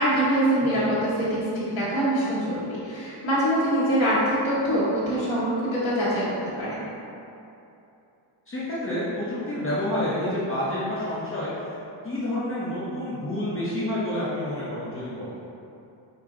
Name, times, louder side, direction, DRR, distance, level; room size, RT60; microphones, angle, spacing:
voice 1, 0.0-6.3 6.6-6.9, right 1 dB, 70° left, -11 dB, 1.2 m, -24 dB
voice 2, 8.5-11.8 12.0-15.4, left 1 dB, 25° left, -9 dB, 0.6 m, -29 dB
5.0 x 2.2 x 3.6 m, 2.8 s
wide cardioid pair, 155°, 48 cm